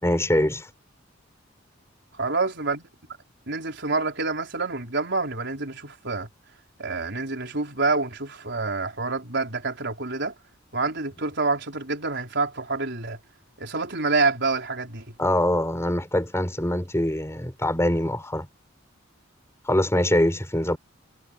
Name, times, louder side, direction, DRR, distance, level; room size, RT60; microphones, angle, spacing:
voice 1, 0.0-0.7 15.2-18.5 19.7-20.8, left 1 dB, 15° left, 5.0 m, -23 dB
voice 2, 2.1-2.9 3.5-6.3 6.8-10.3 10.7-13.2 13.6-15.1, right 3 dB, 60° right, 4.8 m, -27 dB
head